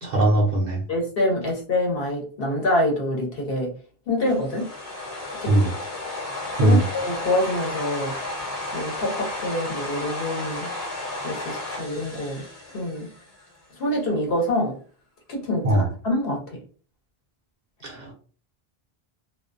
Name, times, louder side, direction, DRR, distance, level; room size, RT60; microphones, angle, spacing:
voice 1, 0.0-0.8 5.5-5.7 6.6-6.8 15.6-15.9 17.8-18.1, right 1 dB, 55° right, 1 dB, 0.6 m, -20 dB
voice 2, 0.9-3.7 4.1-4.7 5.4-5.5 6.5-8.1 8.7-10.7 11.2-12.4 12.7-13.1 13.8-14.8 15.3-16.4, left 1 dB, 65° left, 0 dB, 1.0 m, -26 dB
sound 1, 4.3-13.5, left 2 dB, 40° left, 1.0 m, -33 dB
2.3 x 2.2 x 2.5 m, 0.41 s
omnidirectional pair, 1.0 m